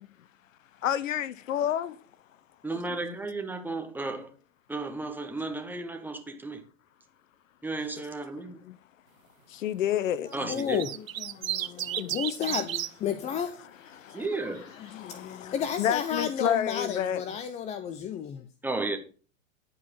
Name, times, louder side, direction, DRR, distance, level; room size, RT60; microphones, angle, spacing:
voice 1, 0.8-2.0 3.0-3.2 7.9-8.0 8.7-8.8 9.5-10.3 11.5-12.1 14.0-14.2 14.9-17.2, left 10 dB, 75° left, 0.8 m, -30 dB
voice 2, 2.6-4.3 4.7-6.6 7.6-8.7 10.3-10.9 14.1-14.7 18.6-19.0, right 3 dB, 5° right, 1.3 m, -33 dB
voice 3, 10.2-13.6 14.8-18.5, left 8 dB, 20° left, 0.5 m, -32 dB
sound 1, 10.3-12.9 14.1-14.6, right 11 dB, 85° right, 0.8 m, -33 dB
11.0 x 4.7 x 5.5 m
hypercardioid pair, 115°, 39 cm